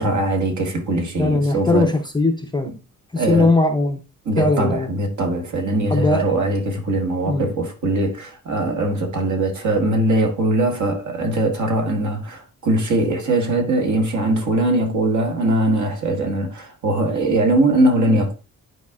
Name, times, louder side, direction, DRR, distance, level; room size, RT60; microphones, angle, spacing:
voice 1, 0.0-1.9 3.2-3.5 4.2-18.3, right 1 dB, 60° right, 1.6 m, -21 dB
voice 2, 1.2-2.7 3.1-4.0 4.4-4.9 5.9-6.3 7.3-7.5, left 2 dB, 15° left, 0.5 m, -19 dB
11.0 x 4.8 x 2.4 m
wide cardioid pair, 160°, 34 cm